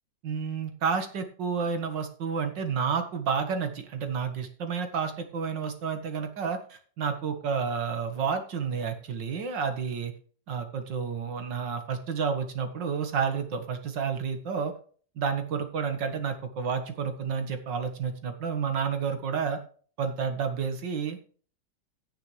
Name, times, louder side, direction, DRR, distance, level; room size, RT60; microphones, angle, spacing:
voice 1, 0.2-10.1 10.5-14.7 15.2-19.6 20.0-21.2, right 6 dB, 75° right, 7 dB, 2.2 m, -30 dB
16.0 x 6.9 x 3.3 m, 0.43 s
omnidirectional pair, 2.0 m